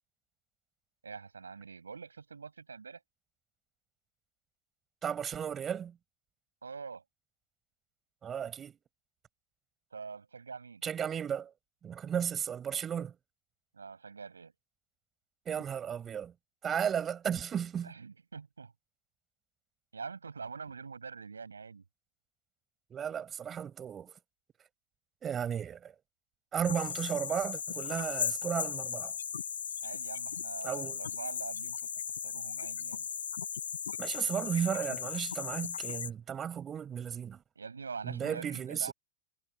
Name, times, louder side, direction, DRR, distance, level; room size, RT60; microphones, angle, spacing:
voice 1, 1.0-3.0 6.6-7.0 9.9-10.8 13.7-14.5 17.8-18.7 19.9-21.8 29.8-33.1 37.5-38.9, right 5 dB, 75° right, 6.6 m, -44 dB
voice 2, 5.0-6.0 8.2-8.8 10.8-11.5 11.8-13.1 15.4-16.3 16.6-17.9 22.9-24.1 25.2-25.9 26.5-29.1 30.6-31.0 34.0-37.4 38.0-38.9, right 8 dB, 25° right, 4.8 m, -34 dB
sound 1, 26.6-36.1, left 7 dB, 70° left, 5.5 m, -37 dB
figure-of-eight pair, 90°, 0 cm